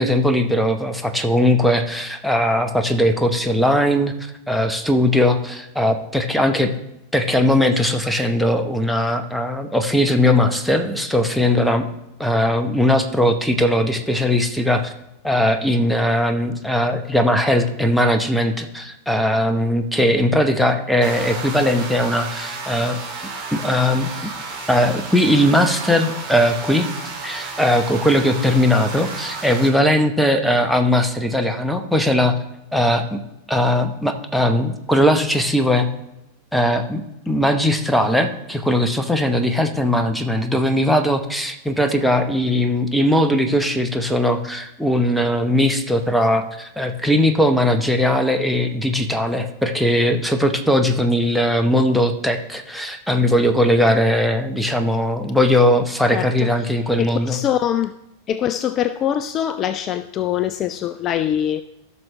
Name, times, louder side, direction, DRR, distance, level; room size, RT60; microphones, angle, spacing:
voice 1, 0.0-6.7 7.1-11.9 12.2-14.9 15.2-23.0 23.5-24.3 24.7-26.9 27.2-32.3 32.7-33.2 33.5-35.9 36.5-37.0 37.3-57.4, left 1 dB, ahead, 0.9 m, -19 dB
sound 1, 21.0-29.7, right 4 dB, 30° right, 2.7 m, -32 dB
voice 2, 56.1-57.9 58.3-61.6, left 10 dB, 30° left, 0.3 m, -23 dB
15.0 x 6.2 x 3.2 m
figure-of-eight pair, 90°, 0 cm